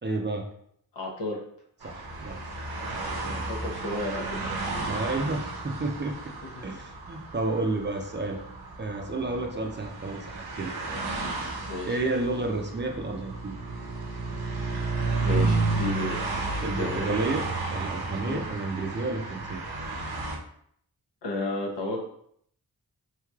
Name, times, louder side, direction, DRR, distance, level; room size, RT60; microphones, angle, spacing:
voice 1, 0.0-0.5 1.8-2.4 3.3-3.5 4.9-6.1 6.6-8.4 8.8-10.8 11.9-13.5 16.6-19.6, right 2 dB, 30° right, 2 dB, 0.5 m, -31 dB
voice 2, 0.9-1.4 3.4-4.4 6.6-6.7 11.7-12.0 15.2-16.2 16.8-17.2 18.2-18.4 21.2-22.0, left 2 dB, 85° left, -2 dB, 0.8 m, -32 dB
sound 1, 1.8-20.4, right 3 dB, 65° right, 0.7 m, -32 dB
3.1 x 2.8 x 2.3 m, 0.68 s
cardioid pair, 40°, 41 cm